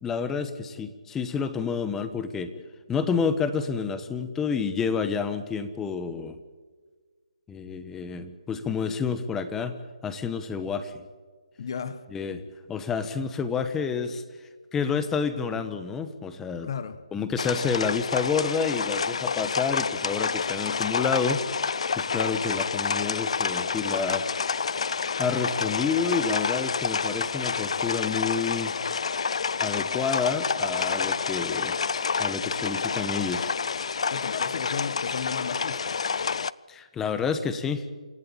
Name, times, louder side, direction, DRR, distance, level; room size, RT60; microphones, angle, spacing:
voice 1, 0.0-2.6 2.9-6.4 7.5-9.8 10.0-11.0 12.1-12.4 12.7-16.7 17.1-24.3 25.2-28.7 29.6-31.8 32.2-33.5 36.7-37.8, left 5 dB, 10° left, 1.2 m, -29 dB
voice 2, 11.6-12.0 16.6-17.0 34.1-36.1, left 6 dB, 45° left, 1.4 m, -34 dB
sound 1, 17.4-36.5, left 5 dB, 60° left, 0.6 m, -28 dB
27.5 x 15.5 x 8.9 m
hypercardioid pair, 165°, 4 cm